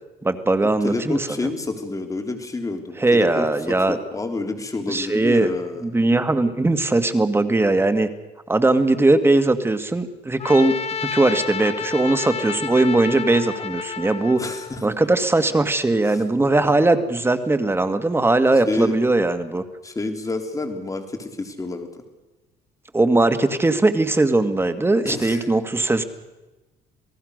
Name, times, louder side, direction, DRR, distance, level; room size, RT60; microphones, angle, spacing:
voice 1, 0.2-1.3 3.0-4.0 4.9-5.5 5.8-8.1 8.5-14.4 14.8-19.6 22.9-26.0, right 2 dB, 15° right, 10 dB, 1.9 m, -19 dB
voice 2, 0.8-6.0 14.4-14.9 16.0-16.2 18.6-18.9 19.8-22.0 25.0-25.5, left 3 dB, 20° left, 5 dB, 3.7 m, -29 dB
Trumpet, 10.4-14.8, left 6 dB, 35° left, 1.7 m, -30 dB
28.0 x 18.5 x 6.6 m, 1.1 s
cardioid pair, 110°, 17 cm